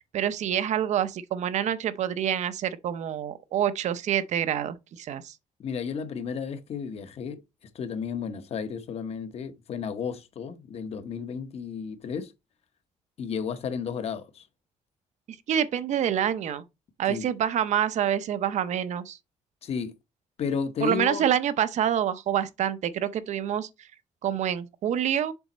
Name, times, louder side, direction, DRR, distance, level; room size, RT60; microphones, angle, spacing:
voice 1, 0.0-5.3 15.3-16.6 17.0-19.2 20.8-23.7 24.2-25.3, right 9 dB, 65° right, 0.6 m, -27 dB
voice 2, 5.6-12.3 13.2-14.5 17.1-17.3 19.6-19.9 20.4-21.2, left 6 dB, 55° left, 0.9 m, -33 dB
7.0 x 4.0 x 4.1 m
cardioid pair, 150°, 13 cm